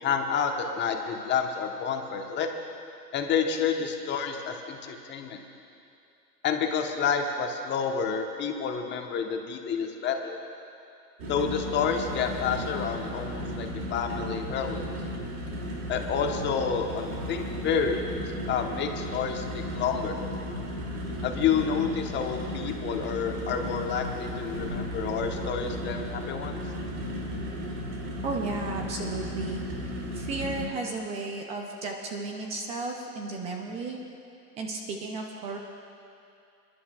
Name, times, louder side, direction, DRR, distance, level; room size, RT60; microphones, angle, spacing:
voice 1, 0.0-2.5 3.1-5.4 6.4-10.4 11.3-14.8 15.9-18.0 18.4-19.4 19.7-20.2 21.2-26.6, left 6 dB, 20° left, 4 dB, 1.0 m, -29 dB
sound 1, 11.2-30.7, equal, 60° right, 2.7 m, -35 dB
voice 2, 28.2-29.6 30.1-34.0 34.6-35.6, right 3 dB, 15° right, 2 dB, 0.4 m, -34 dB
26.5 x 11.0 x 2.3 m, 2.6 s
hypercardioid pair, 115°, 48 cm